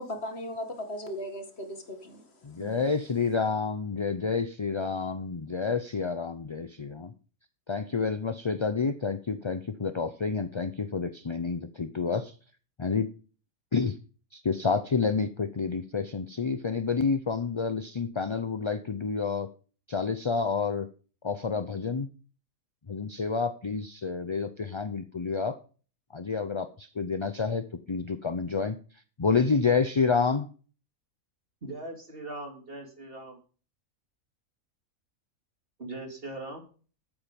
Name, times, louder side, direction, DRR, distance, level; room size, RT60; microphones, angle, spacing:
voice 1, 0.0-2.2 2.6-2.8, left 1 dB, 50° left, 7 dB, 2.1 m, -37 dB
voice 2, 2.4-7.1 7.7-12.3 12.8-13.1 13.7-14.0 14.3-19.5 19.9-20.9 21.2-22.1 22.9-25.6 26.1-28.8 29.2-30.5, left 5 dB, 35° left, 10 dB, 0.5 m, -29 dB
voice 3, 31.6-33.4 35.8-36.6, right 2 dB, 45° right, 3 dB, 3.1 m, -40 dB
12.0 x 8.8 x 5.3 m, 0.38 s
omnidirectional pair, 1.4 m